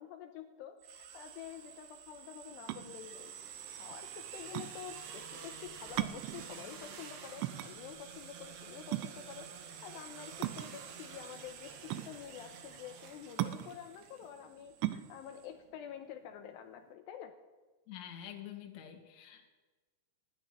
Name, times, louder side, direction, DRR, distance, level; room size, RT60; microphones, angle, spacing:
voice 1, 0.0-17.4, left 9 dB, 90° left, 6 dB, 2.4 m, -48 dB
sound 1, 0.8-15.5, right 7 dB, 65° right, 3.2 m, -49 dB
sound 2, 2.5-16.9, right 15 dB, 85° right, 3.1 m, -40 dB
voice 2, 17.9-19.5, left 10 dB, 55° left, 2 dB, 2.1 m, -47 dB
14.0 x 10.5 x 9.8 m, 1.3 s
omnidirectional pair, 5.9 m